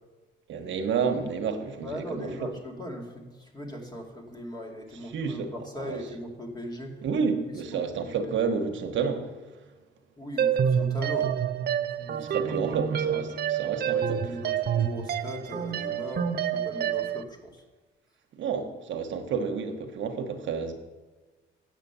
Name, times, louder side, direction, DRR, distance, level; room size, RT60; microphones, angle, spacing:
voice 1, 0.5-2.3 5.1-5.5 5.8-6.0 7.0-9.6 12.2-14.2 18.3-20.7, right 6 dB, 75° right, 1.2 m, -30 dB
voice 2, 1.8-7.1 7.7-7.8 8.2-8.3 10.2-12.8 13.1-13.2 14.2-17.6, equal, 20° left, 2.2 m, -39 dB
sound 1, 10.4-17.2, right 8 dB, 55° right, 0.6 m, -28 dB
7.9 x 7.4 x 6.8 m
cardioid pair, 90°, 20 cm